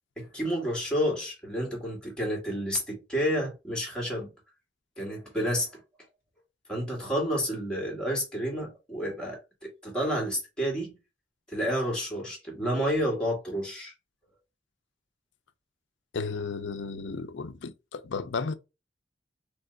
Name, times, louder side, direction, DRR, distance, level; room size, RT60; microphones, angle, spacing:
voice 1, 0.2-4.3 5.0-5.7 6.7-10.9 11.5-13.9, equal, 5° left, 1.9 m, -30 dB
voice 2, 16.1-18.5, left 4 dB, 75° left, 0.5 m, -33 dB
3.3 x 3.3 x 3.9 m
head